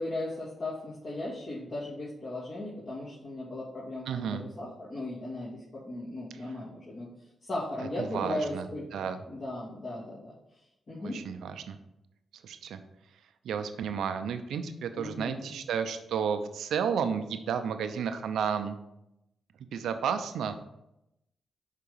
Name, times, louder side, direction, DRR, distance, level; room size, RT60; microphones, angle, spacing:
voice 1, 0.0-7.1 7.4-8.9 9.3-10.3 10.9-11.2 15.0-15.5, left 1 dB, 55° left, -7 dB, 2.1 m, -37 dB
voice 2, 4.1-4.4 6.4-6.6 7.8-8.6 8.9-9.2 11.1-11.8 12.4-12.8 13.4-18.8 19.7-20.6, right 7 dB, 80° right, 9 dB, 0.5 m, -32 dB
5.8 x 3.7 x 5.4 m, 0.86 s
supercardioid pair, 50°, 0 cm